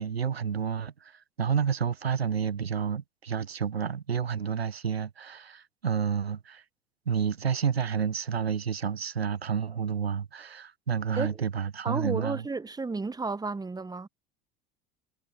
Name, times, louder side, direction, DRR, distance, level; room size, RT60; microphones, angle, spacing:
voice 1, 0.0-6.6 7.1-12.4, right 7 dB, 90° right, 0.9 m, -30 dB
voice 2, 11.8-14.1, right 3 dB, 15° right, 1.2 m, -32 dB
figure-of-eight pair, 70°, 30 cm